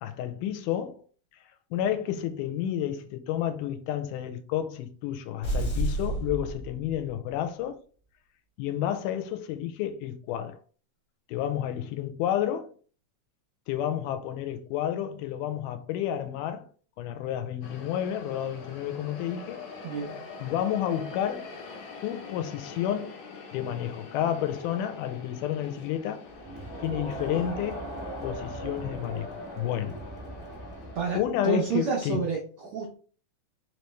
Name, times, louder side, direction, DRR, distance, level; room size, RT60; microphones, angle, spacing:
voice 1, 0.0-1.0 1.7-7.8 8.6-10.6 11.3-12.7 13.7-16.6 17.0-19.6 20.4-21.5 22.0-23.2 23.5-26.3 26.8-27.8 28.2-30.0 31.1-32.2, left 11 dB, 90° left, 2.1 m, -30 dB
sound 1, 5.4-7.3, right 1 dB, 45° left, 0.9 m, -30 dB
sound 2, 17.6-31.0, left 4 dB, 65° left, 2.2 m, -45 dB
voice 2, 19.8-20.2 30.9-32.9, right 5 dB, 80° right, 1.2 m, -30 dB
Crowd, 26.3-31.5, right 1 dB, 20° right, 0.4 m, -39 dB
4.9 x 3.0 x 3.2 m
omnidirectional pair, 3.6 m